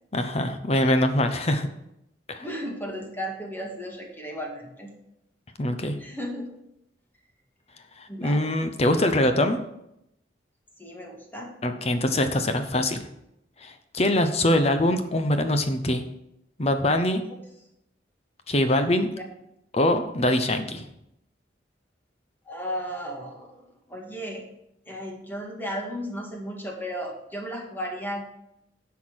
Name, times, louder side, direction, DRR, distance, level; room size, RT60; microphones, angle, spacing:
voice 1, 0.1-1.7 2.3-2.4 5.6-6.0 8.0-9.6 11.6-13.0 13.6-16.0 16.6-17.2 18.5-19.1 19.7-20.9, left 1 dB, 35° left, 8 dB, 0.9 m, -23 dB
voice 2, 2.4-4.9 6.0-6.5 8.1-8.5 10.8-11.5 19.2-19.3 22.5-24.5 24.9-28.2, equal, 10° left, 0 dB, 2.0 m, -35 dB
10.5 x 5.8 x 6.3 m, 0.82 s
head